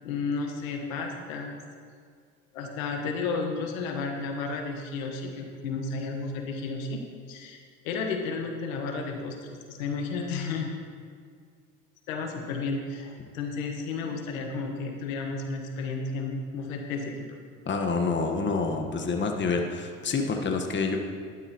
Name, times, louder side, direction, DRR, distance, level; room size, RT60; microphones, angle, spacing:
voice 1, 0.0-1.6 2.5-7.0 7.3-7.6 7.8-9.4 9.7-10.7 12.1-17.3, left 4 dB, 85° left, 3 dB, 1.4 m, -32 dB
voice 2, 17.6-21.0, left 4 dB, 30° left, 3 dB, 1.3 m, -27 dB
12.0 x 11.5 x 2.9 m, 2.1 s
hypercardioid pair, 80°, 40 cm